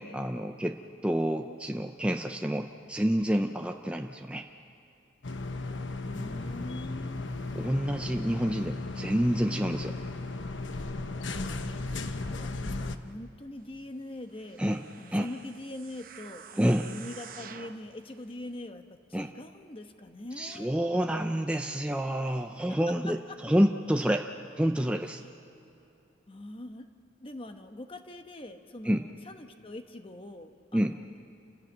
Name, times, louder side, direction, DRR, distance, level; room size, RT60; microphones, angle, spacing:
voice 1, 0.0-4.5 7.5-10.0 14.6-14.8 15.1-15.3 16.6-16.9 19.1-19.3 20.4-23.2 23.4-24.3 24.6-25.2 28.8-29.0 30.7-31.0, equal, 5° right, 4 dB, 0.5 m, -28 dB
sound 1, 5.2-13.0, left 2 dB, 80° left, 1.0 m, -35 dB
voice 2, 5.6-7.3 11.0-14.6 15.0-20.7 22.7-23.4 25.2-25.3 26.3-26.9 27.2-31.2, left 1 dB, 30° left, 7 dB, 1.1 m, -43 dB
sound 2, 14.3-17.9 18.5-18.6, right 7 dB, 50° right, 0.9 m, -48 dB
29.0 x 16.0 x 7.4 m, 2.8 s
head